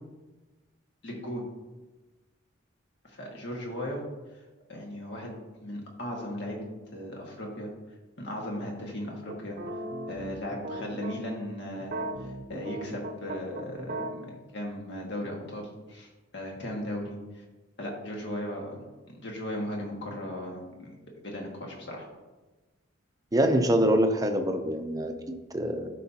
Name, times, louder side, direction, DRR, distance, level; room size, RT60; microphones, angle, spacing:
voice 1, 1.0-1.4 3.1-4.0 4.7-5.3 5.6-7.7 8.2-9.6 10.1-14.0 14.5-17.4 17.8-20.9 21.2-22.1, left 1 dB, 60° left, -1 dB, 1.7 m, -37 dB
sound 1, 9.3-11.4 11.8-14.1, right 1 dB, 50° right, 0.7 m, -37 dB
voice 2, 23.3-25.9, right 1 dB, 20° right, 5 dB, 0.6 m, -25 dB
12.5 x 5.4 x 2.9 m, 1.2 s
head